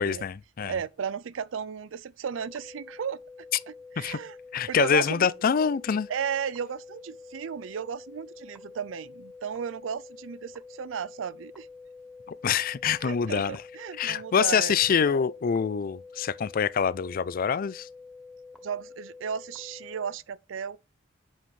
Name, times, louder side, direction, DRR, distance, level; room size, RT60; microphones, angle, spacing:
voice 1, 0.0-0.7 4.0-4.2 4.5-6.1 12.4-13.6 14.0-17.9, left 7 dB, 45° left, 0.4 m, -25 dB
voice 2, 0.6-3.2 3.7-4.4 4.7-5.3 6.1-11.7 13.0-14.8 18.6-20.8, right 7 dB, 85° right, 0.4 m, -34 dB
sound 1, 2.3-20.2, left 4 dB, ahead, 0.6 m, -47 dB
7.7 x 5.4 x 3.2 m
head